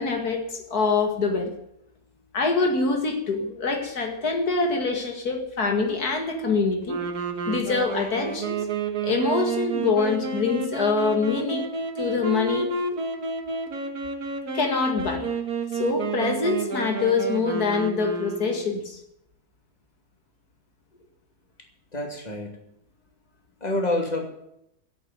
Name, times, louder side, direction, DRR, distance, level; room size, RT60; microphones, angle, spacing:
voice 1, 0.0-1.5 2.3-7.0 7.5-8.7 9.0-11.7 12.0-12.7 14.5-15.3 15.7-19.0, left 4 dB, 85° left, 4 dB, 2.6 m, -25 dB
sound 1, 6.8-18.7, right 3 dB, 80° right, 2.3 m, -30 dB
voice 2, 21.9-22.6 23.6-24.3, left 1 dB, 25° left, 2 dB, 2.8 m, -27 dB
12.5 x 8.5 x 9.4 m, 0.79 s
omnidirectional pair, 1.6 m